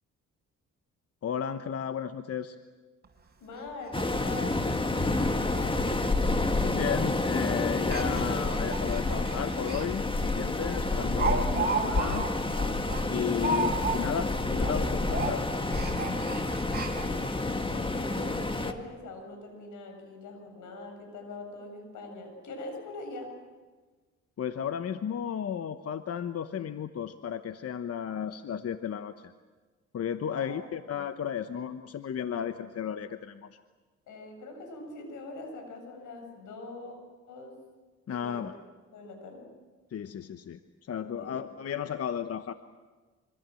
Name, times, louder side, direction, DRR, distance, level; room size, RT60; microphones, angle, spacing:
voice 1, 1.2-2.6 6.6-12.3 13.1-15.5 24.4-29.3 29.9-33.6 38.1-38.5 39.9-40.6 40.9-42.5, left 8 dB, 55° left, 10 dB, 1.0 m, -34 dB
Speech, 3.0-3.1 3.5-3.6 3.9-4.0 4.4-4.5 5.0-5.1 5.4-5.7 5.9-6.0 6.8-7.0 7.8-9.9 10.2-10.3 10.7-14.3 14.5-14.8 15.0-17.3 17.9-18.0 18.3-18.4, right 4 dB, 35° right, 5.7 m, -34 dB
voice 2, 3.4-5.8 16.9-23.3 30.3-30.8 34.1-37.5 38.1-38.6 38.9-39.5 41.2-41.4, left 2 dB, 85° left, 4 dB, 7.7 m, -43 dB
Waves surf, 3.9-18.7, left 2 dB, 15° left, 1.8 m, -29 dB
26.0 x 25.0 x 7.7 m, 1.3 s
cardioid pair, 95°, 30 cm